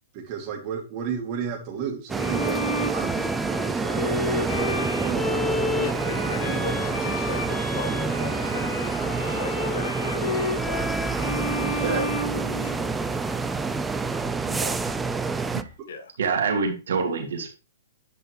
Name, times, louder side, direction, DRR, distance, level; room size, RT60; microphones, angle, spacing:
voice 1, 0.1-6.7 11.8-12.0, right 7 dB, 40° right, 2.6 m, -34 dB
Bowed string instrument, 2.1-13.1, left 1 dB, 20° left, 2.6 m, -31 dB
sound 1, 2.1-15.6, right 4 dB, 10° right, 0.4 m, -28 dB
sound 2, 3.7-15.8, left 3 dB, 40° left, 2.3 m, -42 dB
voice 2, 5.8-12.9 15.9-16.1, left 4 dB, 75° left, 1.6 m, -38 dB
voice 3, 14.4-14.8 15.5-15.6 16.2-17.5, right 5 dB, 70° right, 2.3 m, -26 dB
8.8 x 5.6 x 3.3 m
hypercardioid pair, 135°, 0 cm